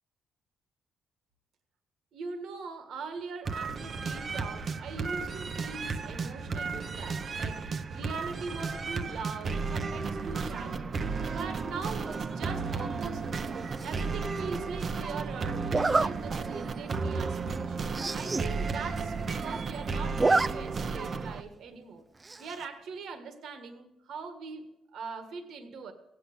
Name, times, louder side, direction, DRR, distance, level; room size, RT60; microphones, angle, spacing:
voice 1, 2.1-10.9 11.3-13.4 13.8-17.8 18.1-22.1 22.4-25.9, right 4 dB, 75° right, 7 dB, 1.6 m, -41 dB
sound 1, 3.4-21.4, right 4 dB, 45° right, 0.8 m, -34 dB
Zipper (clothing), 13.8-14.2 15.7-16.1 16.7-16.8 17.2-17.3 17.5-17.6 17.9-18.5 18.8-18.9 19.1-19.7 20.0-20.5 20.8-20.9 22.2-22.6, right 3 dB, 25° right, 0.4 m, -28 dB
17.0 x 8.3 x 7.8 m, 0.94 s
cardioid pair, 90°, 0 cm